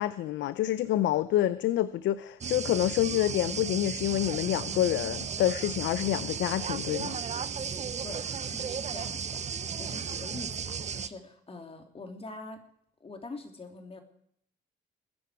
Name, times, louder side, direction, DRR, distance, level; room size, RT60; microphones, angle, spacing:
voice 1, 0.0-7.2, left 13 dB, 80° left, 15 dB, 0.6 m, -27 dB
sound 1, 2.4-11.1, right 7 dB, 35° right, 0.8 m, -35 dB
voice 2, 8.0-12.6 13.0-14.0, left 3 dB, 30° left, 5 dB, 2.9 m, -45 dB
20.5 x 10.5 x 4.7 m, 0.69 s
cardioid pair, 85°, 19 cm